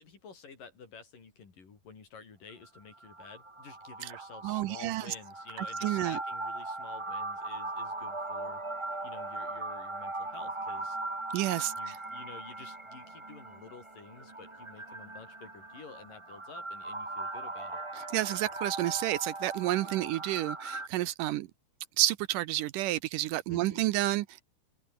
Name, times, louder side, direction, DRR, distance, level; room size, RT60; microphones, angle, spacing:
voice 1, 0.0-8.6 9.0-11.0 11.8-17.8 23.5-23.8, left 5 dB, 70° left, 6.4 m, -50 dB
sound 1, 2.5-20.9, right 2 dB, 40° right, 0.4 m, -39 dB
voice 2, 4.0-5.1 5.6-6.2 11.3-12.0 18.0-21.5 22.0-24.4, right 16 dB, 80° right, 2.2 m, -30 dB
omnidirectional pair, 4.0 m